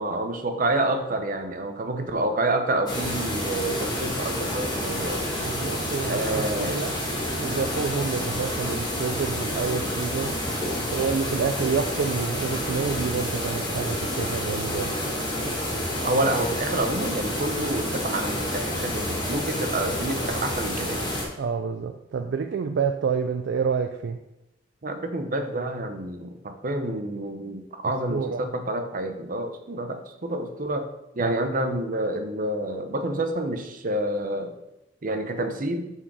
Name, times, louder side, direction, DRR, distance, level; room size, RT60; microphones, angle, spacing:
voice 1, 0.0-5.3 6.0-6.8 16.0-21.0 24.8-30.9 31.1-34.5 35.0-35.8, right 1 dB, 45° right, 7 dB, 0.7 m, -28 dB
sound 1, 2.9-21.2, left 1 dB, 25° left, 1.8 m, -29 dB
voice 2, 5.3-7.0 7.4-10.4 10.9-15.0 21.4-24.2 28.1-28.4 31.2-31.4, right 5 dB, 65° right, 7 dB, 0.4 m, -28 dB
5.8 x 4.7 x 4.8 m, 0.90 s
head